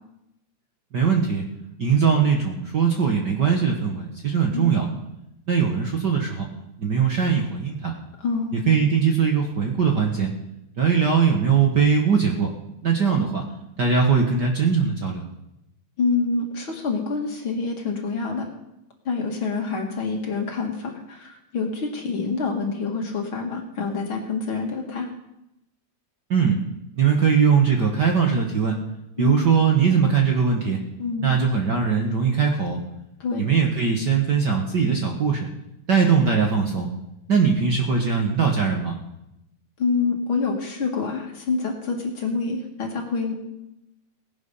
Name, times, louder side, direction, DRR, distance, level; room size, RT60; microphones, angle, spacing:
voice 1, 0.9-1.4 1.8-4.9 5.5-6.5 6.8-7.9 8.7-10.3 10.8-12.5 12.8-13.4 13.8-15.3 26.3-26.6 26.9-28.8 29.2-30.8 31.2-32.8 33.4-35.5 35.9-36.9 37.3-39.0, right 6 dB, 45° right, 1 dB, 1.6 m, -20 dB
voice 2, 8.2-8.7 16.0-18.5 19.1-25.1 29.2-29.3 31.0-31.3 33.2-33.4 39.8-43.3, left 4 dB, 45° left, 1 dB, 2.7 m, -26 dB
17.5 x 11.0 x 5.6 m, 0.86 s
omnidirectional pair, 3.3 m